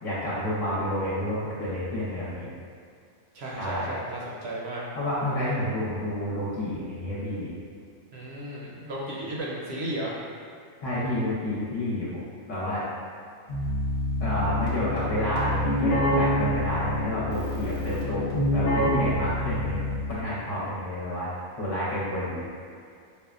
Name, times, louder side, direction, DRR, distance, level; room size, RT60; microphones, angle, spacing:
voice 1, 0.0-2.5 3.6-4.0 5.0-7.5 10.8-12.2 12.5-12.8 14.2-18.2 18.5-19.8 20.1-21.3 21.6-22.5, left 1 dB, 65° left, -10 dB, 1.1 m, -29 dB
voice 2, 3.3-4.9 8.1-10.1, right 1 dB, 60° right, -5 dB, 0.8 m, -34 dB
Keyboard (musical), 13.5-20.3, left 1 dB, 45° left, 0.8 m, -27 dB
5.2 x 2.1 x 2.4 m, 2.3 s
omnidirectional pair, 1.4 m